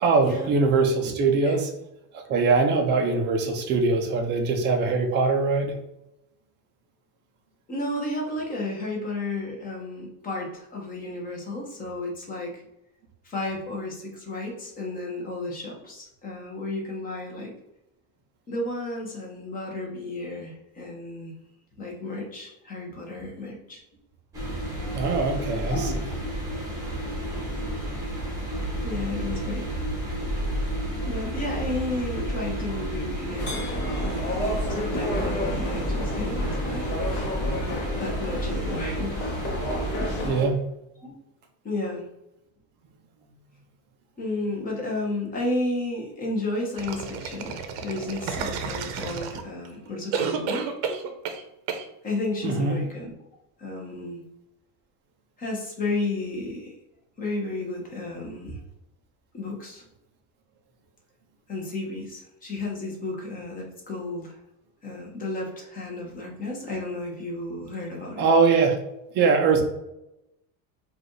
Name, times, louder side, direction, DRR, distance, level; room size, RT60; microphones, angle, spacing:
voice 1, 0.0-1.7 2.1-5.7 24.9-25.9 40.2-40.6 52.4-52.8 68.2-68.8 69.1-69.6, right 4 dB, 25° right, 3 dB, 0.3 m, -22 dB
voice 2, 7.7-12.6 13.2-17.5 18.5-21.3 21.8-23.8 25.7-26.0 27.3-27.5 28.8-29.8 31.1-33.5 34.0-37.0 38.0-39.1 41.0-41.1 41.6-42.1 44.2-50.7 52.0-53.1 53.6-54.2 55.4-56.8 57.2-58.6 59.3-59.8 61.5-64.3 64.8-68.3 69.5-69.6, left 2 dB, 20° left, -1 dB, 0.8 m, -32 dB
sound 1, 24.3-40.3, right 1 dB, 10° right, 1.0 m, -30 dB
sound 2, 33.4-40.5, left 1 dB, 40° left, 1.0 m, -32 dB
sound 3, 46.8-49.7 50.1-51.4 51.7-51.8, right 6 dB, 55° right, 0.7 m, -31 dB
4.8 x 2.4 x 3.0 m, 0.87 s
cardioid pair, 160°, 45 cm